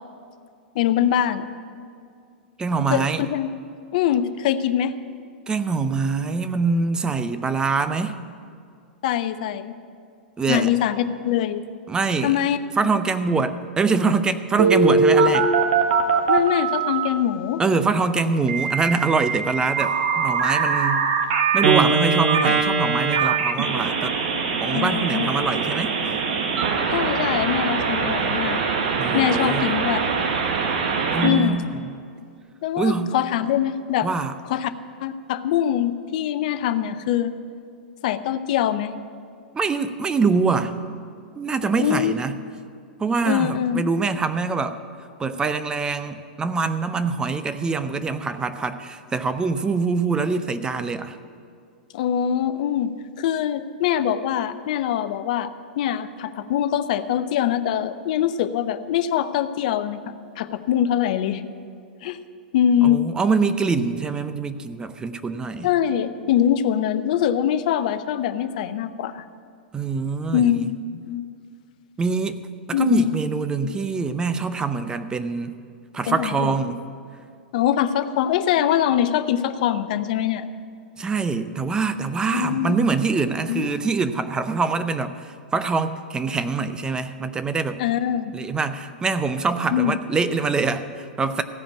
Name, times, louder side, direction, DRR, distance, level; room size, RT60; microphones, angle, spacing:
voice 1, 0.7-1.5 2.9-3.5 3.9-4.9 9.0-9.7 10.5-11.6 12.2-12.6 12.8-13.0 16.3-17.6 24.7-25.5 26.9-28.6 29.1-30.0 31.2-31.6 32.6-34.1 34.5-34.7 35.0-37.3 38.0-38.9 41.8-42.1 43.2-43.8 51.9-52.9 53.2-55.5 55.8-60.0 60.4-61.4 62.0-62.2 62.5-63.0 65.6-69.2 70.3-70.8 71.0-71.3 72.7-73.2 73.6-73.8 76.1-76.6 77.5-80.4 82.3-82.8 83.5-83.7 87.8-88.3 89.7-89.9, left 10 dB, 55° left, 11 dB, 0.6 m, -23 dB
voice 2, 2.6-3.2 5.5-8.2 10.4-10.8 11.9-12.4 12.8-15.5 17.6-21.1 21.5-24.2 24.6-26.2 29.0-29.7 31.1-31.9 32.8-33.2 34.0-34.3 39.5-40.8 41.4-42.4 43.0-44.8 45.2-51.2 62.8-65.7 69.7-70.6 72.0-75.5 75.9-76.8 81.0-87.8 88.3-91.4, right 4 dB, 15° right, 11 dB, 0.6 m, -24 dB
Telephone, 14.6-17.1 18.5-31.3, right 5 dB, 60° right, 1.2 m, -22 dB
15.0 x 5.1 x 9.1 m, 2.3 s
hypercardioid pair, 100°, 5 cm